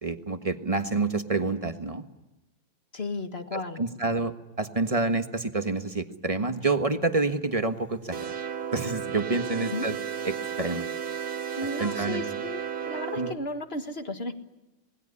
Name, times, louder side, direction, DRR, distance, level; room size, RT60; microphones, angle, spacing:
voice 1, 0.0-2.0 3.5-8.3 8.7-9.9 10.2-10.8 11.8-12.4 13.2-13.3, right 3 dB, 20° right, 8 dB, 1.1 m, -28 dB
voice 2, 2.9-3.8 9.6-9.9 11.6-14.3, left 2 dB, 30° left, 7 dB, 1.7 m, -34 dB
sound 1, 8.1-13.3, right 8 dB, 90° right, 2.9 m, -33 dB
26.5 x 20.5 x 9.8 m, 1.1 s
omnidirectional pair, 2.2 m